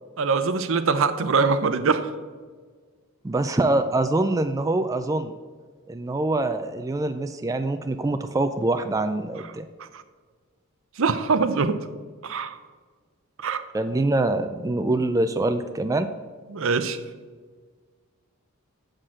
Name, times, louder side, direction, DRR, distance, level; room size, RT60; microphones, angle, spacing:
voice 1, 0.2-2.1 9.9-10.0 11.0-11.8 12.2-12.6 13.4-13.6 16.5-17.0, right 4 dB, 65° right, 11 dB, 0.6 m, -23 dB
voice 2, 3.2-5.3 5.9-9.7 13.7-16.1, right 2 dB, 15° right, 8 dB, 0.3 m, -24 dB
7.5 x 6.4 x 6.4 m, 1.5 s
head